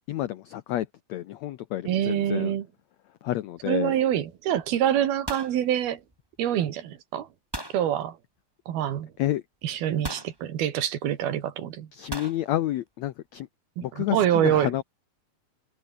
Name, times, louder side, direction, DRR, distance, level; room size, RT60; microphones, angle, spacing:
voice 1, 0.0-2.5 3.2-3.9 9.2-9.4 11.9-13.5 13.8-14.8, left 13 dB, 85° left, 1.5 m, -30 dB
voice 2, 1.9-2.7 3.7-6.0 6.4-7.3 7.7-8.2 8.7-9.1 9.6-11.9 13.8-14.7, right 10 dB, 85° right, 3.9 m, -26 dB
sound 1, 3.6-4.0 4.2-4.6 4.9-6.5 7.5-7.8 9.0-9.1 10.0-10.4 12.1-12.4, right 1 dB, 5° right, 5.3 m, -37 dB
omnidirectional pair, 4.3 m